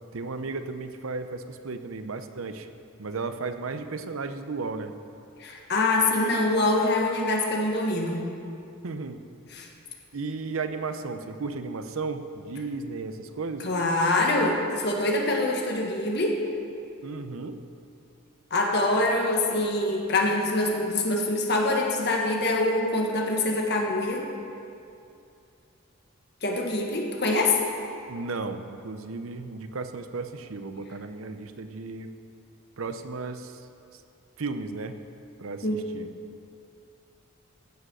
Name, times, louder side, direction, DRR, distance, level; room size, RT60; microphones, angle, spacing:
voice 1, 0.1-2.7 3.0-4.9 8.8-9.2 10.1-13.7 17.0-17.6 28.1-32.1 32.8-33.7 33.9-34.0 34.4-35.0 35.4-36.1, right 4 dB, 85° right, 9 dB, 0.7 m, -34 dB
voice 2, 5.4-8.3 9.5-9.7 13.6-16.4 18.5-24.2 26.4-27.6 35.6-35.8, left 2 dB, 50° left, 0 dB, 1.6 m, -25 dB
14.5 x 7.7 x 6.3 m, 2.6 s
head